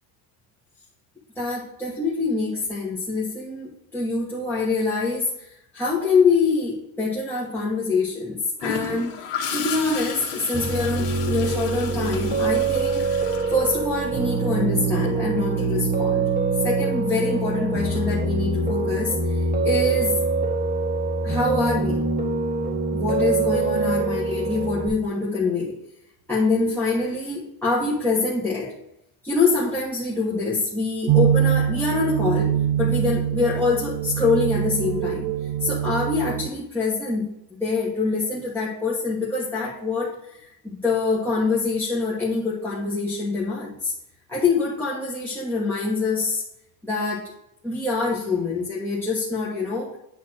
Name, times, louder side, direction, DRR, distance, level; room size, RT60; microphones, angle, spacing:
voice 1, 1.3-5.3 5.7-13.2 13.5-16.2 16.6-20.1 21.2-22.0 22.9-25.8 26.3-28.7 29.2-35.3 35.6-37.3 37.6-40.1 40.8-43.9 44.3-46.4 46.8-47.3 47.6-50.0, left 3 dB, 5° left, -8 dB, 1.4 m, -25 dB
Gurgling / Toilet flush, 8.6-14.3 16.3-16.6, left 7 dB, 75° left, 1.4 m, -34 dB
Piano, 10.5-24.9, right 3 dB, 20° right, 1.3 m, -24 dB
sound 1, 31.1-36.5, right 11 dB, 70° right, 0.6 m, -23 dB
8.5 x 3.1 x 6.2 m, 0.83 s
cardioid pair, 130°, 42 cm